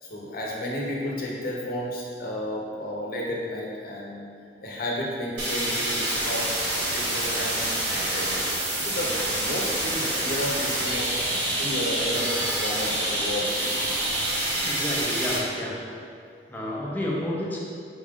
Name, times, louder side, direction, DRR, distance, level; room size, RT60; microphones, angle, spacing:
voice 1, 0.0-4.3 4.6-8.5 8.8-13.5, equal, 55° left, -3 dB, 0.8 m, -32 dB
sound 1, 5.4-15.4, right 1 dB, 70° right, 0.9 m, -27 dB
voice 2, 14.6-15.8 16.5-17.6, left 1 dB, 10° left, -5 dB, 0.6 m, -30 dB
5.3 x 2.4 x 3.6 m, 2.4 s
head